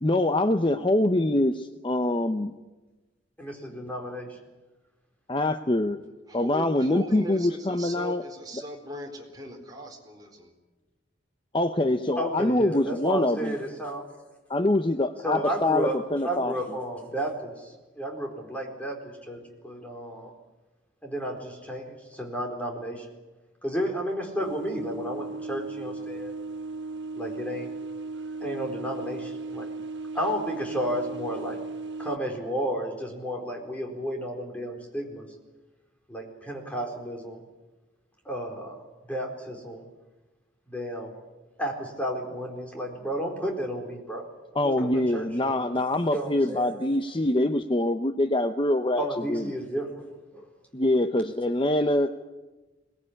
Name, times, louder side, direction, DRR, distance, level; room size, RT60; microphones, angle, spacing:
voice 1, 0.0-2.5 5.3-6.0 6.3-8.2 11.5-13.6 14.5-16.5 44.5-49.4 50.7-52.1, left 1 dB, 25° left, 8 dB, 0.7 m, -24 dB
voice 2, 3.4-4.4 12.2-14.0 15.2-20.3 21.0-23.1 23.6-26.3 27.2-27.7 28.4-29.7 30.1-31.6 32.0-35.2 36.1-37.4 38.2-39.8 40.7-41.1 41.6-44.2 44.6-45.6 46.1-46.7 49.0-50.0 50.3-50.5, equal, 5° left, 1 dB, 4.3 m, -32 dB
voice 3, 6.3-10.5, right 1 dB, 20° right, 1 dB, 4.4 m, -39 dB
sound 1, 24.4-32.2, right 3 dB, 65° right, 1.2 m, -36 dB
22.5 x 19.5 x 9.9 m, 1.2 s
head